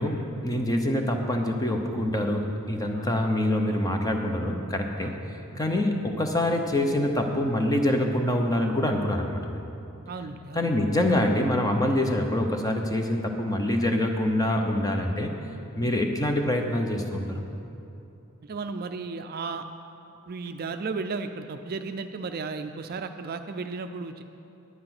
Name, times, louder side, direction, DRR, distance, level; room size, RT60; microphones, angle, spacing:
voice 1, 0.0-5.1 5.6-9.6 10.5-15.3 15.7-17.4, left 1 dB, 15° left, 3 dB, 0.9 m, -25 dB
voice 2, 10.1-10.7 15.8-15.9 18.4-19.7 20.3-24.2, right 4 dB, 45° right, 7 dB, 0.4 m, -34 dB
10.0 x 9.4 x 6.0 m, 2.7 s
head